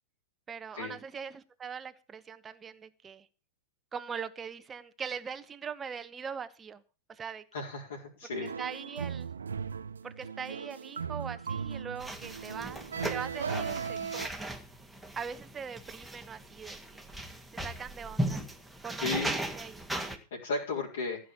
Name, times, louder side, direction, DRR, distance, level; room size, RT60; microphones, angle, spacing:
voice 1, 0.5-3.3 3.9-6.8 7.1-7.4 8.4-9.3 10.0-14.6 15.2-18.5 18.8-19.8, right 6 dB, 20° right, 11 dB, 1.1 m, -41 dB
voice 2, 7.5-8.5 19.0-19.3 20.3-21.2, left 4 dB, 65° left, -4 dB, 4.3 m, -34 dB
sound 1, 8.3-14.3, right 6 dB, 75° right, 0.6 m, -37 dB
sound 2, 12.0-20.2, right 1 dB, ahead, 2.0 m, -37 dB
15.0 x 6.5 x 7.2 m, 0.35 s
figure-of-eight pair, 95°, 0 cm